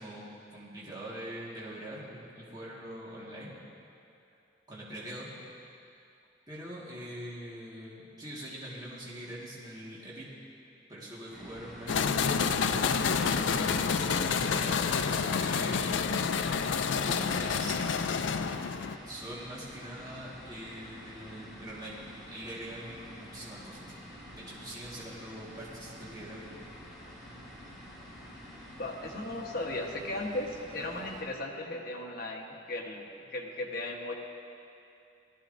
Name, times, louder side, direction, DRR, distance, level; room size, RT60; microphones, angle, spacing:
voice 1, 0.0-3.5 4.7-5.3 6.5-10.3 10.9-12.0 13.2-16.1 16.8-17.9 19.0-23.9 24.4-26.5, right 1 dB, 20° right, -7 dB, 1.7 m, -43 dB
sound 1, 11.3-31.2, equal, ahead, 2.8 m, -48 dB
sound 2, 11.9-19.0, left 6 dB, 80° left, 0.4 m, -28 dB
voice 2, 28.8-34.1, left 2 dB, 55° left, 0 dB, 1.2 m, -36 dB
18.0 x 13.0 x 2.6 m, 2.6 s
head